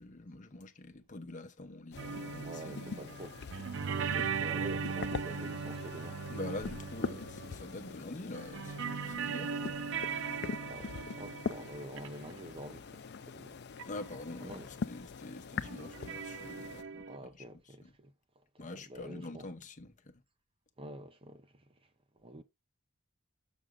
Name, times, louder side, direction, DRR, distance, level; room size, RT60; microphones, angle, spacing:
voice 1, 0.0-3.2 6.3-9.8 13.9-17.4 17.8-17.9 18.6-20.2, left 2 dB, 40° left, 0.9 m, -45 dB
sound 1, 1.9-16.8, left 5 dB, 55° left, 0.5 m, -43 dB
sound 2, 2.0-8.0 8.3-12.4 13.8-13.9 14.1-14.2 15.6-17.2, right 6 dB, 65° right, 0.5 m, -39 dB
voice 2, 2.4-3.4 3.9-6.2 10.7-13.6 14.4-14.7 16.9-18.1 18.5-19.5 20.8-21.7 22.2-22.4, right 1 dB, 25° right, 0.7 m, -47 dB
6.4 x 6.2 x 3.7 m
head